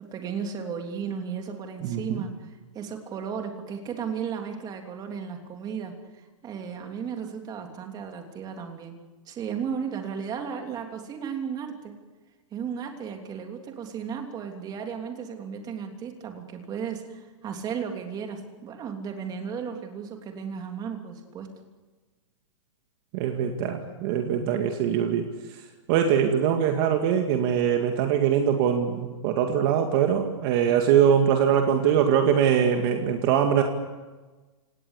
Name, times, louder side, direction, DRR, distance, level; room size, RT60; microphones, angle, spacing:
voice 1, 0.1-9.0 9.3-11.9 12.5-21.5, right 7 dB, 25° right, 4 dB, 3.1 m, -35 dB
voice 2, 1.8-2.2 23.1-25.3 25.9-33.6, right 8 dB, 45° right, 4 dB, 2.2 m, -22 dB
29.0 x 18.0 x 8.3 m, 1.3 s
hypercardioid pair, 145°, 17 cm